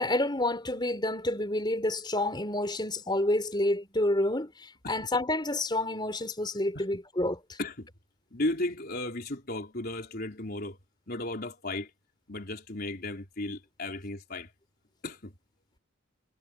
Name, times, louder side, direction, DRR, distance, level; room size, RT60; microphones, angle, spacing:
voice 1, 0.0-7.6, left 1 dB, 20° left, 4.7 m, -29 dB
voice 2, 8.3-10.8 11.1-11.9 12.3-14.5 15.0-15.3, left 2 dB, 45° left, 4.1 m, -35 dB
head